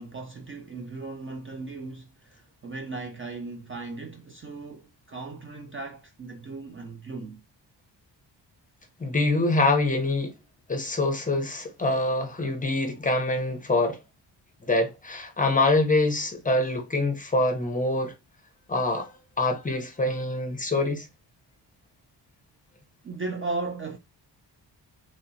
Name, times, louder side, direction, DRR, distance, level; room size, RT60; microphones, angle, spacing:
voice 1, 0.0-7.4 23.0-24.0, right 3 dB, 30° right, 0.4 m, -37 dB
voice 2, 9.0-10.3 10.7-14.0 14.7-18.1 18.7-21.1, left 2 dB, 20° left, 0.6 m, -25 dB
3.2 x 2.8 x 2.6 m
wide cardioid pair, 150°, 42 cm